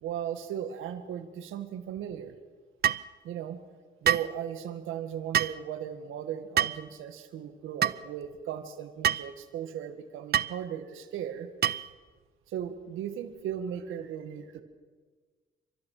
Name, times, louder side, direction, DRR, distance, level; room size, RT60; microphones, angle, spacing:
voice 1, 0.0-2.3 3.2-3.6 4.0-11.5 12.5-14.6, right 9 dB, 85° right, 9 dB, 1.9 m, -37 dB
sound 1, 2.8-3.1 4.0-4.3 5.3-5.6 6.6-6.8 7.8-8.0 9.0-9.3 10.3-10.5 11.6-11.9, right 10 dB, 55° right, 0.5 m, -26 dB
30.0 x 13.5 x 6.7 m, 1.4 s
cardioid pair, 90°, 20 cm